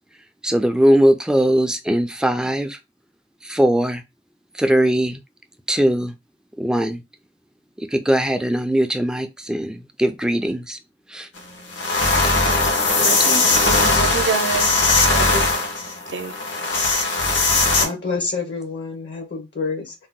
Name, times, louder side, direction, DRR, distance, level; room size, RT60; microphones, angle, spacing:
voice 1, 0.4-2.8 3.4-4.0 4.5-5.2 5.7-6.1 6.6-7.0 7.8-10.8 11.1-11.3, right 1 dB, 5° right, 0.3 m, -20 dB
sound 1, 11.4-11.5 11.7-17.9, left 3 dB, 90° left, 0.9 m, -19 dB
voice 2, 13.0-14.8 15.0-15.5 16.1-16.4, right 4 dB, 85° right, 0.6 m, -27 dB
voice 3, 17.8-19.9, left 4 dB, 65° left, 0.7 m, -28 dB
2.7 x 2.1 x 3.6 m
head